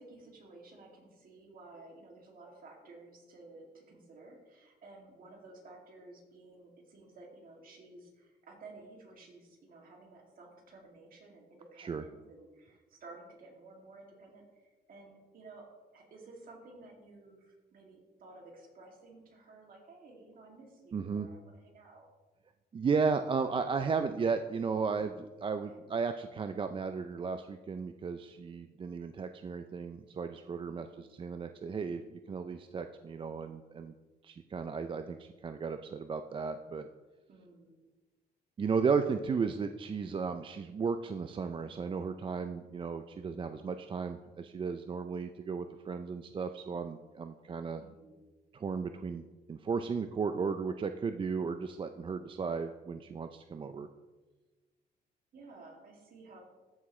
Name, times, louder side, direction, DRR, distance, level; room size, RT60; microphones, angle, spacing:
voice 1, 0.0-15.7 15.9-22.1 25.7-25.8 30.7-31.2 37.3-37.8 47.8-48.2 55.3-56.4, right 2 dB, 55° right, -1 dB, 2.4 m, -54 dB
voice 2, 20.9-21.3 22.7-33.9 34.2-36.9 38.6-47.8 48.5-49.2 49.5-53.9, right 5 dB, 30° right, 8 dB, 0.4 m, -34 dB
13.5 x 5.9 x 3.2 m, 1.2 s
cardioid pair, 100°, 17 cm